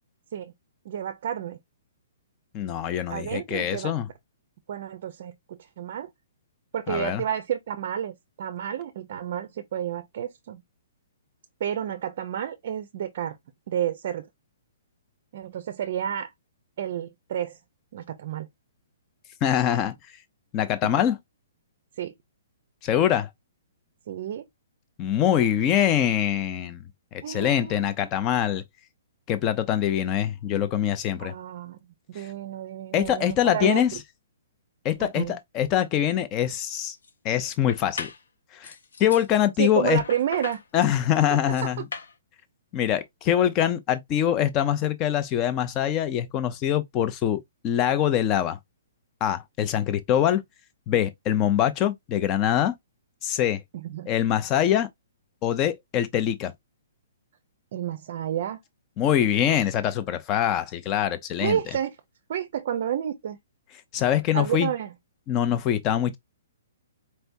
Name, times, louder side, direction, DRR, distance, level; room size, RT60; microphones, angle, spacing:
voice 1, 0.9-1.6 3.1-3.9 4.7-6.1 6.7-10.6 11.6-13.4 13.7-14.3 15.3-16.3 16.8-17.6 17.9-18.5 20.8-20.9 22.0-22.1 24.1-24.4 27.2-27.9 31.2-31.8 32.1-33.8 35.0-35.4 39.6-40.6 53.7-54.1 57.7-58.6 61.4-61.9 62.3-63.4 64.3-64.9, right 10 dB, 40° right, 0.5 m, -30 dB
voice 2, 2.5-4.1 6.9-7.2 19.4-19.9 20.5-21.2 22.8-23.3 25.0-26.8 27.1-28.6 29.3-31.3 32.2-32.3 32.9-33.9 34.8-37.0 37.2-38.1 38.5-38.7 39.0-40.0 40.7-41.9 42.7-48.6 49.2-50.4 50.9-52.7 53.2-53.6 54.1-54.9 55.4-56.5 59.0-61.6 63.9-64.7 65.3-66.2, left 10 dB, 15° left, 0.5 m, -24 dB
sound 1, 36.1-36.2 36.5-37.1 37.7-38.2 38.6-39.3 40.0-42.2, left 5 dB, 85° left, 1.4 m, -38 dB
4.3 x 3.4 x 2.6 m
hypercardioid pair, 175°, 0 cm